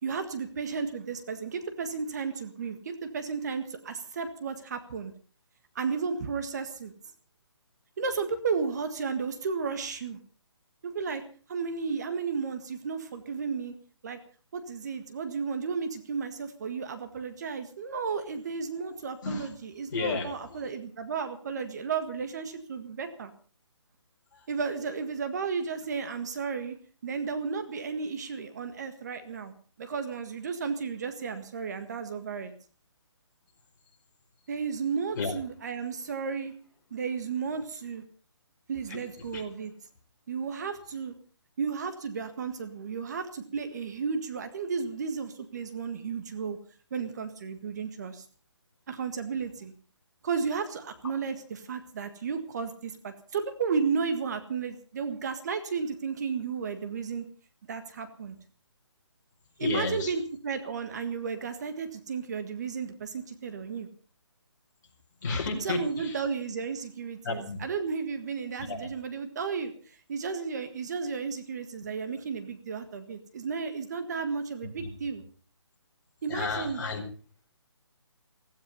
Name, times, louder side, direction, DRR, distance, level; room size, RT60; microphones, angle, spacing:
voice 1, 0.0-5.1 5.7-6.9 8.0-10.2 10.8-11.2 11.5-13.7 14.0-14.2 14.5-23.3 24.5-26.8 27.0-29.5 29.8-32.5 34.5-36.5 36.9-38.0 38.7-39.7 40.3-41.1 41.6-46.6 46.9-48.2 48.9-49.7 50.2-57.2 57.7-58.3 59.6-63.9 65.6-75.2 76.2-76.8, right 5 dB, 35° right, 9 dB, 1.7 m, -33 dB
voice 2, 19.9-20.6 35.2-35.3 39.3-39.4 59.6-60.1 65.2-66.1 67.2-67.6 68.7-68.8 74.8-74.9 76.3-77.0, left 4 dB, 40° left, 1 dB, 5.1 m, -32 dB
16.0 x 16.0 x 5.5 m, 0.41 s
hypercardioid pair, 165°, 15 cm